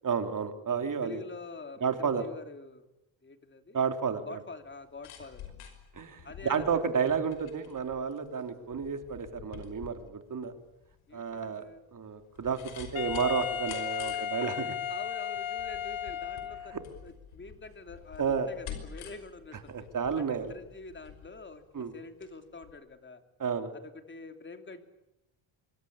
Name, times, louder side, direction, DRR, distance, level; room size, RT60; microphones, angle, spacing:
voice 1, 0.0-1.2 1.8-2.2 3.7-4.4 5.9-10.5 11.1-11.6 11.9-14.5 18.2-18.5 19.7-20.5 21.7-21.9 23.4-23.7, right 6 dB, 40° right, 7 dB, 3.1 m, -31 dB
voice 2, 0.8-2.9 3.2-3.8 4.3-5.5 6.2-7.3 11.1-11.8 14.1-16.8 17.0-19.9 20.2-23.2 23.7-24.9, left 3 dB, 25° left, 8 dB, 3.0 m, -47 dB
sound 1, 4.7-22.3 22.6-22.7, left 8 dB, 90° left, 5.7 m, -49 dB
Wind instrument woodwind instrument, 12.9-16.9, left 10 dB, 70° left, 2.1 m, -35 dB
25.5 x 23.5 x 8.7 m, 0.90 s
cardioid pair, 130°, 48 cm